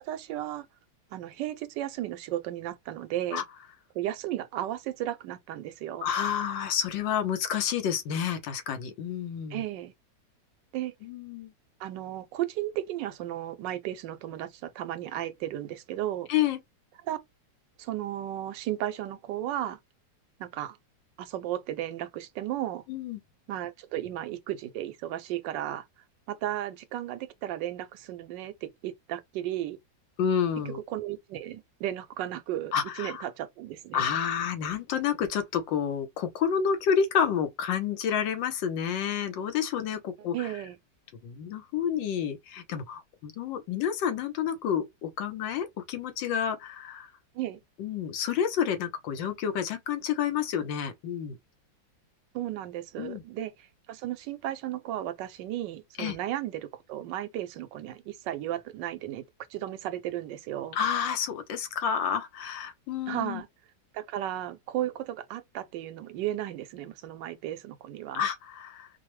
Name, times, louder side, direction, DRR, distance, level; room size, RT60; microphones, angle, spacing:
voice 1, 0.0-0.7 1.1-3.4 3.9-6.1 9.5-9.9 10.7-10.9 11.8-16.3 17.0-17.2 17.8-19.8 20.4-20.8 21.2-22.8 23.5-25.9 26.3-29.8 30.7-34.1 40.3-40.8 47.3-47.6 52.3-59.2 59.5-60.8 63.1-63.5 63.9-68.3, right 13 dB, 80° right, 1.2 m, -34 dB
voice 2, 6.0-9.6 11.0-11.5 16.3-16.6 22.9-23.2 30.2-30.8 32.7-33.3 33.9-40.5 41.2-47.1 47.8-51.4 53.0-53.2 56.0-56.2 60.7-63.4 68.1-68.9, left 8 dB, 85° left, 1.5 m, -29 dB
4.7 x 2.0 x 3.1 m
omnidirectional pair, 2.0 m